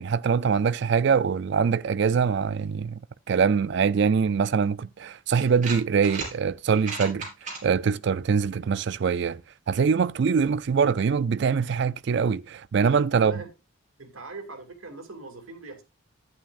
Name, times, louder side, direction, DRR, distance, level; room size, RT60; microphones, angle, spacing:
voice 1, 0.0-3.0 3.3-7.3 7.6-9.4 9.7-13.3, right 6 dB, 55° right, 0.4 m, -23 dB
sound 1, 5.4-6.3 6.7-7.6, right 4 dB, 35° right, 3.5 m, -35 dB
voice 2, 13.2-13.5 14.0-15.8, right 3 dB, 85° right, 2.3 m, -40 dB
11.5 x 9.1 x 2.5 m
head